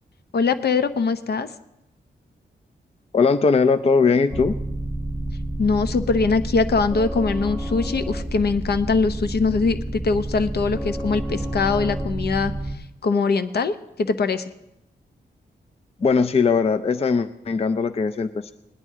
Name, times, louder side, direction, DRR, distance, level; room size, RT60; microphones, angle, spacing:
voice 1, 0.3-1.5 5.6-12.5 13.0-14.4, left 4 dB, 65° left, 11 dB, 0.7 m, -22 dB
voice 2, 3.1-4.5 16.0-18.5, left 5 dB, 35° left, 11 dB, 0.4 m, -20 dB
sound 1, 4.3-12.8, right 1 dB, 10° left, 1.2 m, -29 dB
19.0 x 11.0 x 3.6 m, 0.87 s
wide cardioid pair, 100°, 18 cm